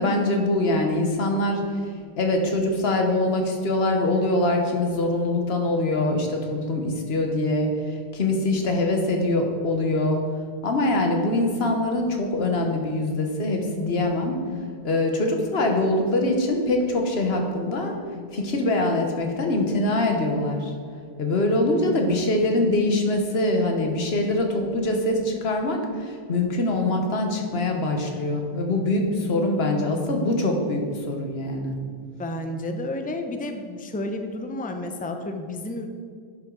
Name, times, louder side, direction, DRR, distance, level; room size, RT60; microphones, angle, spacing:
voice 1, 0.0-1.6 2.2-7.7 8.1-10.2 10.6-14.4 14.8-17.9 18.3-20.7 21.2-31.8, left 2 dB, 75° left, 3 dB, 1.3 m, -23 dB
voice 2, 21.7-22.1 32.2-35.9, left 1 dB, 10° left, 5 dB, 0.4 m, -31 dB
10.5 x 6.1 x 3.8 m, 2.1 s
omnidirectional pair, 1.1 m